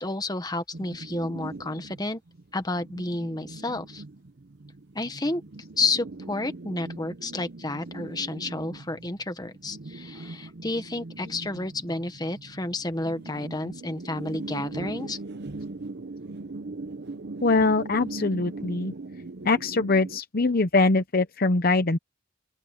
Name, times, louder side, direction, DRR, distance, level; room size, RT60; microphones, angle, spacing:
voice 1, 0.0-2.2 2.5-4.0 4.9-5.4 5.8-15.2, left 2 dB, 20° left, 1.3 m, -31 dB
sound 1, 0.7-20.2, right 2 dB, 55° right, 0.7 m, -40 dB
voice 2, 17.4-18.9 19.4-22.0, left 3 dB, 45° left, 0.8 m, -23 dB
open air
head